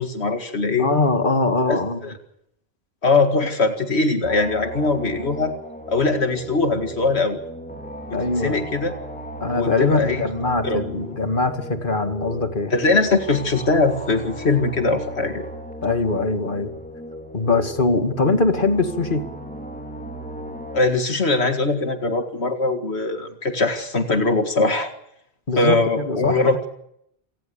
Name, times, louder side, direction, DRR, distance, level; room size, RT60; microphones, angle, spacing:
voice 1, 0.0-0.9 1.7-2.1 3.0-5.5 5.9-7.4 8.1-8.9 9.6-10.3 10.6-10.8 12.7-15.5 20.7-24.9 25.6-26.7, left 3 dB, 75° left, 6 dB, 2.3 m, -21 dB
voice 2, 0.8-2.0 8.1-8.6 9.4-12.7 15.8-16.7 17.3-19.3 25.5-26.4, left 3 dB, 50° left, 7 dB, 2.4 m, -22 dB
sound 1, 4.2-20.8, equal, 10° left, 3.7 m, -36 dB
27.0 x 18.0 x 7.0 m, 0.75 s
omnidirectional pair, 1.1 m